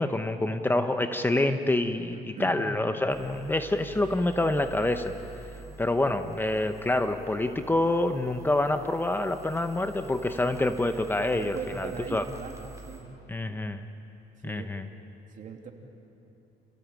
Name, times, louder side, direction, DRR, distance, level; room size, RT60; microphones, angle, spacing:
voice 1, 0.0-5.1 5.8-12.2 13.3-13.9 14.4-14.9, left 2 dB, 10° left, 7 dB, 0.9 m, -27 dB
voice 2, 2.1-2.6 11.3-13.2 14.4-14.7 15.3-15.7, right 5 dB, 50° right, 3 dB, 2.8 m, -40 dB
sound 1, 3.1-13.0, right 3 dB, 20° right, 3.8 m, -47 dB
28.0 x 16.5 x 9.0 m, 3.0 s
cardioid pair, 110°, 17 cm